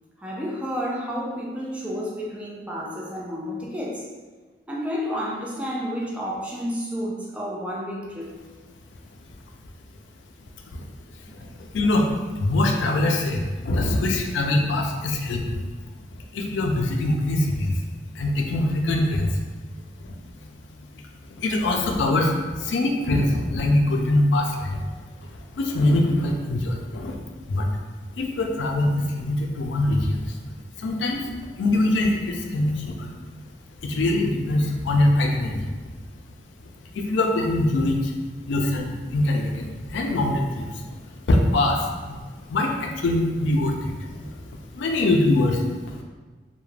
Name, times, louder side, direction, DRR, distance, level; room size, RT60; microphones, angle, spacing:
voice 1, 0.2-4.0 4.7-8.3 11.4-11.5, equal, 5° right, -4 dB, 0.3 m, -30 dB
voice 2, 11.2-15.7 16.3-17.8 18.1-19.4 20.0-21.1 21.4-24.8 25.2-27.2 27.5-27.7 28.2-30.4 30.8-33.1 33.8-35.7 36.6-38.1 38.5-42.2 42.5-46.0, left 1 dB, 85° left, 2 dB, 0.4 m, -23 dB
2.3 x 2.1 x 3.1 m, 1.4 s
head